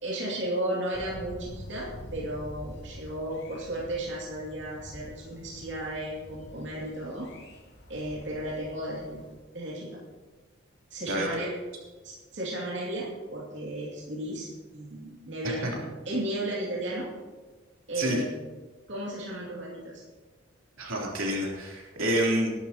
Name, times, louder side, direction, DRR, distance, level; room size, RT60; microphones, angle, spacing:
voice 1, 0.0-7.3 7.9-9.2 9.5-10.0 10.9-11.5 12.0-14.5 14.7-17.1 17.9-18.3 18.9-20.0, right 1 dB, 60° right, -5 dB, 2.6 m, -34 dB
Thunder, 0.9-9.4, equal, 55° left, 2.4 m, -46 dB
voice 2, 20.8-22.5, right 1 dB, 85° right, -3 dB, 3.5 m, -28 dB
20.5 x 11.5 x 3.0 m, 1.3 s
head